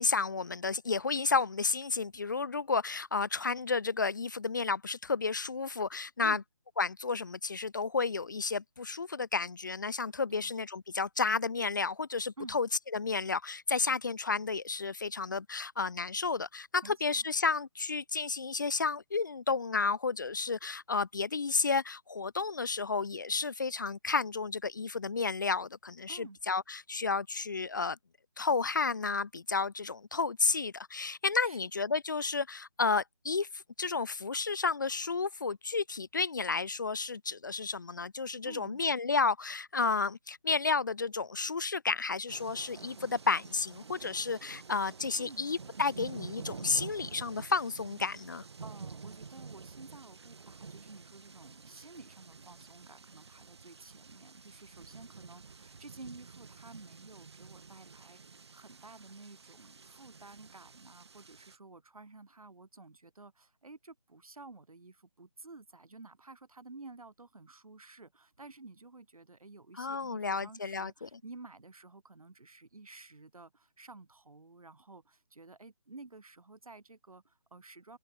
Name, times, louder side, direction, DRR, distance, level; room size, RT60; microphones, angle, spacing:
voice 1, 0.0-6.4 6.8-28.0 28.4-48.4 69.8-71.1, left 4 dB, 35° left, 0.7 m, -32 dB
voice 2, 16.8-17.2 26.1-26.4 31.4-31.7 38.4-38.8 45.2-45.5 48.6-78.0, right 3 dB, 75° right, 7.3 m, -52 dB
sound 1, 42.3-61.6, right 5 dB, 45° right, 1.2 m, -49 dB
figure-of-eight pair, 170°, 18 cm